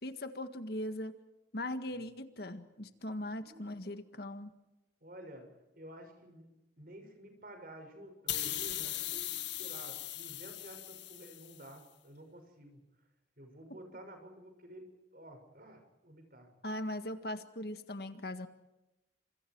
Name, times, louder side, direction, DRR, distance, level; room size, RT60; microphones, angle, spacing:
voice 1, 0.0-1.2 1.5-4.5 16.6-18.5, left 1 dB, 60° left, 9 dB, 1.8 m, -40 dB
voice 2, 3.3-3.9 5.0-5.5 5.7-6.5 6.8-9.3 9.6-12.8 13.4-16.5, right 1 dB, 50° right, 6 dB, 6.3 m, -51 dB
sound 1, 8.3-11.7, left 13 dB, 75° left, 2.0 m, -39 dB
29.5 x 27.0 x 4.7 m, 0.99 s
head